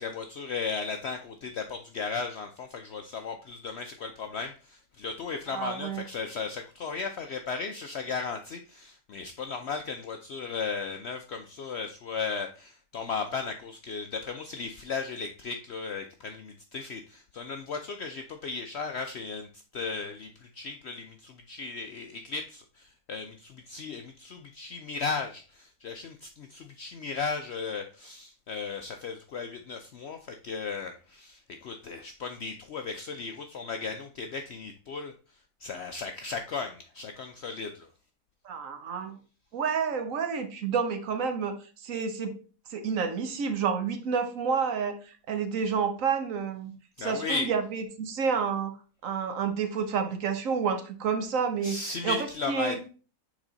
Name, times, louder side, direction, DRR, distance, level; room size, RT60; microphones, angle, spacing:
voice 1, 0.0-35.1 35.6-37.9 47.0-47.5 51.6-52.9, left 4 dB, 70° left, 6 dB, 0.6 m, -36 dB
voice 2, 5.5-6.0 38.4-39.2 39.5-42.3 42.7-46.7 47.0-48.7 49.0-51.8 52.0-52.8, right 6 dB, 65° right, 7 dB, 1.1 m, -29 dB
6.2 x 4.1 x 3.8 m, 0.37 s
omnidirectional pair, 1.6 m